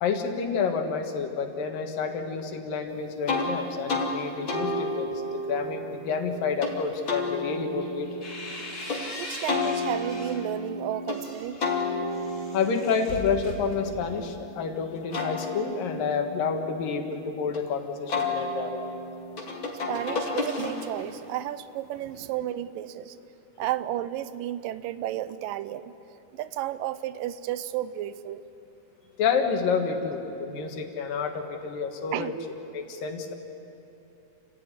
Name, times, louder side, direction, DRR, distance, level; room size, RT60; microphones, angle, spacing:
voice 1, 0.0-8.1 12.5-18.8 29.2-32.3 32.7-33.3, left 5 dB, 90° left, 5 dB, 3.4 m, -29 dB
sound 1, 3.3-3.5 3.9-4.1 4.5-6.7 7.1-9.0 9.5-11.2 11.6-14.5 14.9-17.6 18.1-21.1, left 2 dB, 40° left, 3.1 m, -32 dB
sound 2, 7.8-10.5 10.9-14.3, left 1 dB, 20° left, 4.0 m, -41 dB
voice 2, 9.2-11.6 19.9-23.2 23.6-25.9 26.3-28.4 32.1-32.3, right 12 dB, 90° right, 14 dB, 2.4 m, -32 dB
29.0 x 15.0 x 9.6 m, 2.9 s
omnidirectional pair, 3.8 m